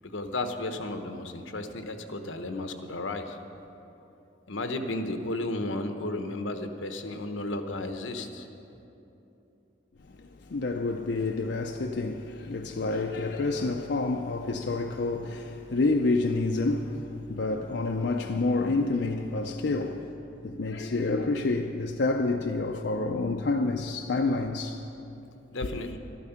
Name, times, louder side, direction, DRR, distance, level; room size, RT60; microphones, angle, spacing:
voice 1, 0.1-3.4 4.5-8.5 25.5-26.0, left 2 dB, 80° left, 0.9 m, -33 dB
voice 2, 10.0-20.1 20.4-24.9 25.6-25.7, left 3 dB, 60° left, 0.5 m, -28 dB
12.5 x 12.5 x 5.8 m
head